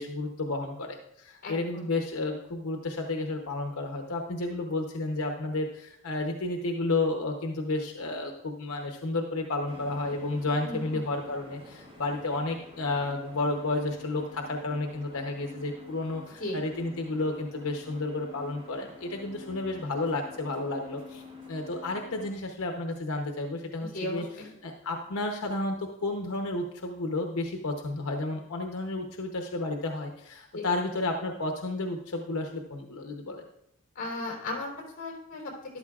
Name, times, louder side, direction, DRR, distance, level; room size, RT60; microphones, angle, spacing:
voice 1, 0.0-21.2 21.5-33.4, left 2 dB, 85° left, 3 dB, 0.8 m, -32 dB
voice 2, 1.4-1.9 10.6-11.0 16.4-16.6 23.9-24.5 30.5-30.7 34.0-34.7 35.0-35.4, left 1 dB, 40° left, 0 dB, 3.6 m, -35 dB
sound 1, 9.7-22.3, left 3 dB, 25° right, 1.8 m, -48 dB
13.0 x 11.5 x 2.4 m, 0.80 s
head